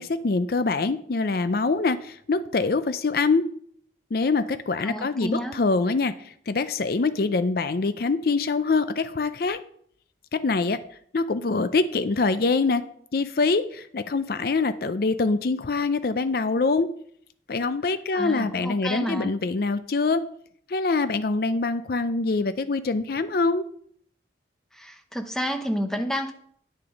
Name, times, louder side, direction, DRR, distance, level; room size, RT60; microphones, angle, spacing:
voice 1, 0.0-3.4 4.1-9.6 10.3-10.8 11.1-12.8 13.1-16.9 17.5-20.2 20.7-23.7, left 3 dB, 55° left, 12 dB, 0.5 m, -24 dB
voice 2, 4.8-5.6 18.1-19.3 24.7-26.3, equal, 5° left, 6 dB, 0.8 m, -30 dB
9.8 x 6.8 x 5.1 m, 0.63 s
head